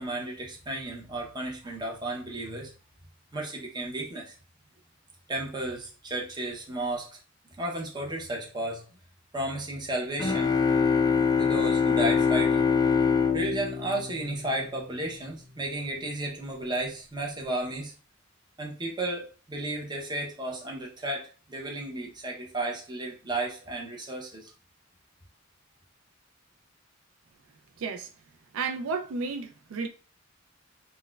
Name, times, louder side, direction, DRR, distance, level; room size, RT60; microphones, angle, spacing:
voice 1, 0.0-2.7 3.3-4.4 5.3-7.1 7.6-8.8 9.3-10.5 11.4-12.6 13.3-17.9 18.6-24.5, right 1 dB, 20° right, 0.7 m, -33 dB
sound 1, 10.2-14.9, left 6 dB, 20° left, 0.3 m, -24 dB
voice 2, 27.8-28.1 28.5-29.9, right 4 dB, 75° right, 0.4 m, -32 dB
4.1 x 2.2 x 2.3 m
head